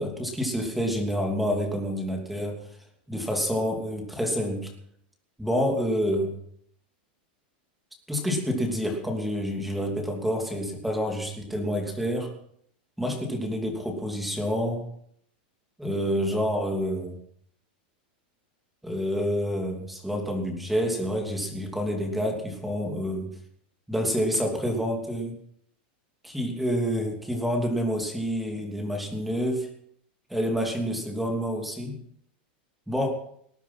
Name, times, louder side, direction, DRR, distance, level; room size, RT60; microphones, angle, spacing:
voice 1, 0.0-2.6 3.1-4.7 5.4-6.3 8.1-12.3 13.0-14.9 15.8-17.2 18.8-23.3 23.9-25.4 26.2-29.7 30.3-32.0 32.9-33.1, equal, ahead, 2 dB, 2.8 m, -28 dB
19.5 x 10.0 x 6.0 m, 0.67 s
supercardioid pair, 165°, 5 cm